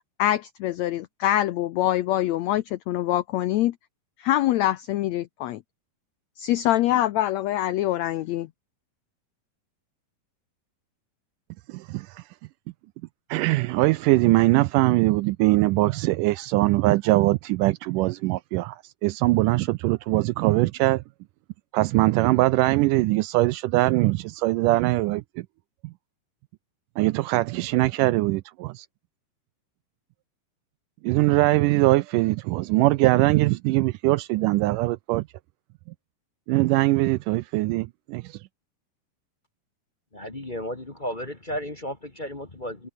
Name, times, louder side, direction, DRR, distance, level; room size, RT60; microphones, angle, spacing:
voice 1, 0.2-3.7 4.2-5.6 6.4-8.5, left 14 dB, 90° left, 1.5 m, -24 dB
voice 2, 11.7-12.1 13.3-21.0 21.7-25.5 27.0-28.9 31.0-35.3 36.5-38.2, right 19 dB, 80° right, 1.9 m, -22 dB
voice 3, 40.1-42.9, equal, 25° left, 1.1 m, -34 dB
omnidirectional pair, 4.1 m